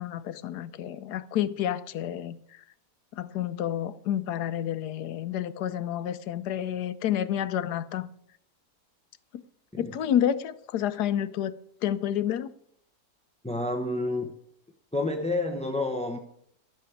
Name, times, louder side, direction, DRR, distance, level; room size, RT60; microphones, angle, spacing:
voice 1, 0.0-2.4 3.2-8.1 9.3-9.4 9.8-11.5 11.8-12.5, left 10 dB, 80° left, 1.3 m, -29 dB
voice 2, 13.4-14.3 14.9-16.2, left 2 dB, 5° left, 0.6 m, -29 dB
13.0 x 6.6 x 8.3 m
omnidirectional pair, 1.7 m